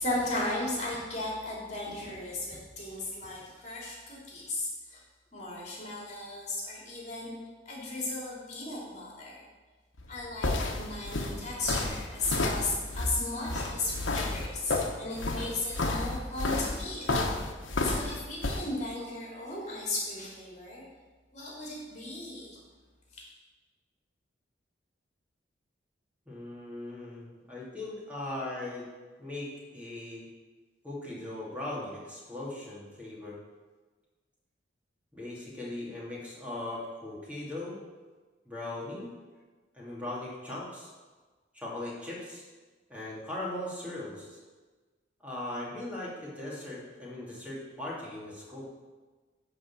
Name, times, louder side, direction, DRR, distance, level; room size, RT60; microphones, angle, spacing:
voice 1, 0.0-5.0 5.3-7.3 7.7-9.4 10.1-17.1 17.8-20.8 21.3-22.6 23.1-23.2, left 2 dB, 35° left, -4 dB, 2.6 m, -35 dB
sound 1, 10.0-18.6, left 2 dB, 85° left, 1.1 m, -31 dB
voice 2, 26.3-28.9 29.2-30.3 30.8-33.4 35.1-37.8 38.5-39.1 39.7-40.9 41.5-42.4 42.9-44.4 45.2-48.7, left 1 dB, 5° right, -6 dB, 2.4 m, -39 dB
10.5 x 4.1 x 7.2 m, 1.3 s
head